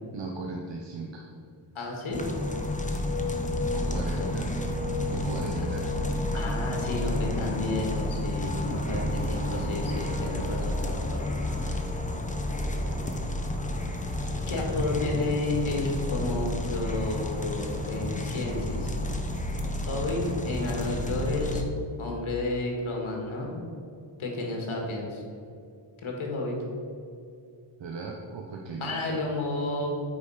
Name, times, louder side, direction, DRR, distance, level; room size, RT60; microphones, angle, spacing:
voice 1, 0.1-1.3 3.7-4.5 5.1-6.5 8.7-9.2 27.8-29.2, right 3 dB, 65° right, 1 dB, 0.9 m, -37 dB
voice 2, 1.7-2.3 3.8-4.3 6.3-11.4 14.5-19.0 19.9-21.6 22.0-23.6 24.2-25.2 26.0-26.6 28.8-29.9, left 2 dB, 80° left, 0 dB, 2.1 m, -31 dB
sound 1, 2.1-21.6, left 1 dB, 15° left, 0.9 m, -30 dB
8.7 x 5.3 x 4.9 m, 2.5 s
cardioid pair, 80°, 48 cm